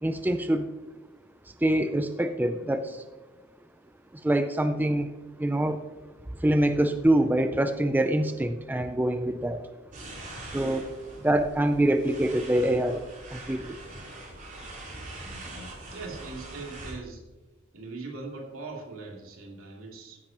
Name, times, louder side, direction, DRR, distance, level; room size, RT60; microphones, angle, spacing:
voice 1, 0.0-0.7 1.6-3.0 4.1-5.1 5.4-5.8 6.4-9.7 10.5-10.9 11.2-13.0 13.3-13.8, right 1 dB, 10° right, 9 dB, 0.4 m, -25 dB
sound 1, 9.9-16.9, right 2 dB, 40° right, 3.9 m, -43 dB
voice 2, 15.9-17.2 17.7-20.2, right 3 dB, 75° right, -1 dB, 2.9 m, -40 dB
14.5 x 10.5 x 3.0 m, 1.2 s
head